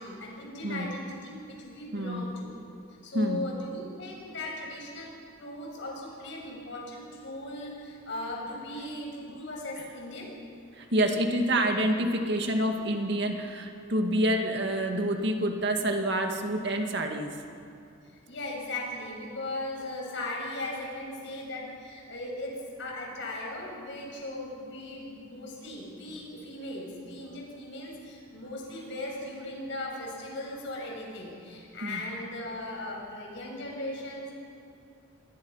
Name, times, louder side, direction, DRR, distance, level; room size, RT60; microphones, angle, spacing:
voice 1, 0.0-2.6 3.0-10.3 18.1-34.3, left 1 dB, 65° left, -2 dB, 6.8 m, -38 dB
voice 2, 1.9-2.3 3.1-3.4 9.8-9.9 10.7-17.4 31.8-32.0, right 1 dB, 55° right, 3 dB, 2.1 m, -27 dB
28.0 x 21.0 x 5.7 m, 2.5 s
head